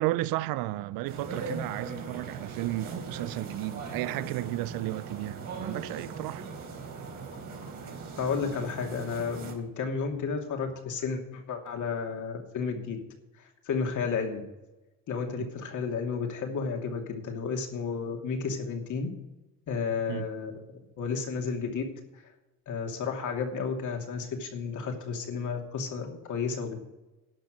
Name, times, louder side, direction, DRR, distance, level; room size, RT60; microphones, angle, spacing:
voice 1, 0.0-6.5 15.4-15.5 20.1-20.3, right 17 dB, 75° right, 0.6 m, -33 dB
sound 1, 1.1-9.5, right 4 dB, 55° right, 3.4 m, -40 dB
voice 2, 8.2-13.0 13.4-14.4 15.1-19.1 19.7-20.5 21.0-21.8 22.7-26.8, left 5 dB, 55° left, 2.8 m, -32 dB
12.0 x 6.0 x 9.1 m
supercardioid pair, 80°, 35 cm